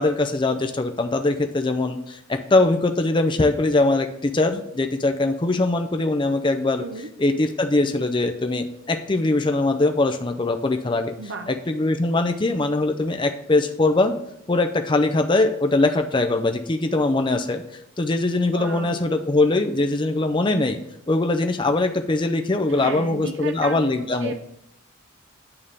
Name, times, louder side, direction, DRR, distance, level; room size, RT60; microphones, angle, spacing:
voice 1, 0.0-6.8 7.2-11.1 11.5-14.1 14.5-17.6 18.0-20.8 21.1-24.3, left 2 dB, 20° left, 6 dB, 0.5 m, -22 dB
voice 2, 6.8-7.1 11.2-11.5 18.5-19.0 22.7-24.3, right 3 dB, 55° right, 6 dB, 0.6 m, -33 dB
8.7 x 3.6 x 6.4 m, 0.76 s
head